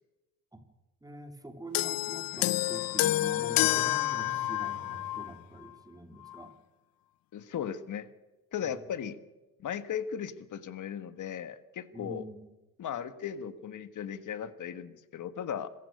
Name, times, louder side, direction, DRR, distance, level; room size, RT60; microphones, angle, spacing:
voice 1, 1.0-6.5 11.9-12.5, right 1 dB, 10° right, 6 dB, 3.3 m, -45 dB
sound 1, 1.7-5.3 6.2-6.4, left 17 dB, 85° left, 0.6 m, -29 dB
sound 2, 3.6-6.1, right 7 dB, 55° right, 3.7 m, -48 dB
voice 2, 7.3-8.1 8.5-9.2 9.6-12.2 12.8-15.7, left 8 dB, 60° left, 12 dB, 1.6 m, -37 dB
26.0 x 15.0 x 6.7 m, 1.1 s
cardioid pair, 100°, 34 cm